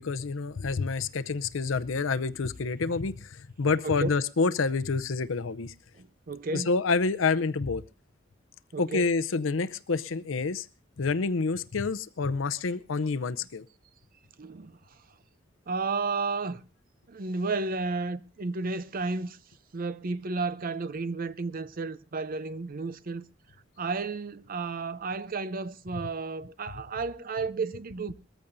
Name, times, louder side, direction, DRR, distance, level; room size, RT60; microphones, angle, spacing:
voice 1, 0.0-5.7 6.5-7.8 8.8-10.7 11.0-13.7, left 4 dB, 85° left, 0.6 m, -28 dB
voice 2, 6.0-6.7 8.7-9.1 14.4-14.8 15.7-16.6 17.1-19.4 19.7-23.2 23.8-28.1, right 3 dB, 50° right, 0.6 m, -32 dB
21.5 x 14.0 x 2.6 m
head